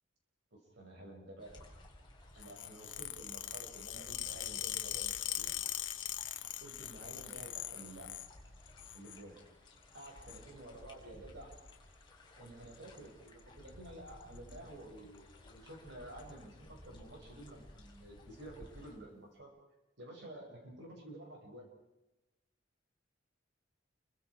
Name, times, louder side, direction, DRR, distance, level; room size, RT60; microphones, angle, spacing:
voice 1, 0.5-1.6 2.3-5.6 6.6-8.1 8.9-9.4 9.9-11.5 12.4-19.5 20.0-21.7, right 1 dB, 65° right, 0 dB, 5.9 m, -51 dB
sound 1, 1.4-19.0, left 1 dB, 25° left, 4.1 m, -57 dB
sound 2, 2.4-8.3 8.7-9.2 9.9-10.4 11.5-11.7 12.7-13.0 13.3-13.4 13.7-13.8 14.1-14.6 15.2-15.3 16.2-16.3, left 13 dB, 75° left, 1.0 m, -41 dB
29.0 x 23.5 x 4.9 m, 1.0 s
head